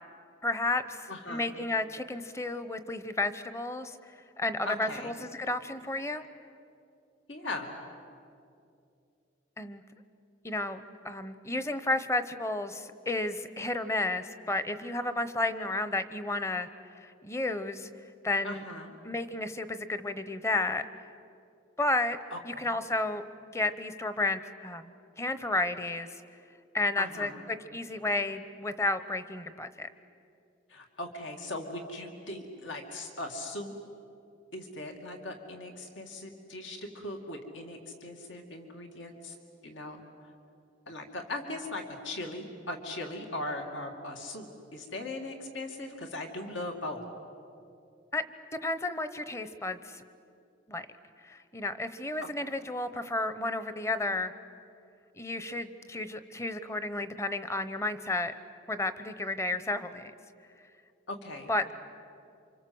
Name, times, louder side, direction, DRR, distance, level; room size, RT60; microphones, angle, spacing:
voice 1, 0.4-4.0 4.4-6.3 9.6-9.8 10.4-16.7 17.0-17.9 18.2-18.6 19.0-20.8 21.8-22.2 22.4-23.2 23.5-26.1 26.7-29.9 48.1-48.2 48.6-50.0 50.7-50.9 51.2-54.3 55.2-58.3 58.7-60.1 61.5-61.7, left 2 dB, 15° left, 12 dB, 0.9 m, -32 dB
voice 2, 1.1-1.5 4.6-5.1 7.3-7.7 18.4-18.9 22.3-22.7 27.0-27.4 30.7-33.8 34.5-39.4 39.6-40.0 40.9-47.0 61.1-61.5, left 2 dB, 70° left, 3 dB, 2.6 m, -39 dB
28.5 x 26.0 x 7.9 m, 2.5 s
head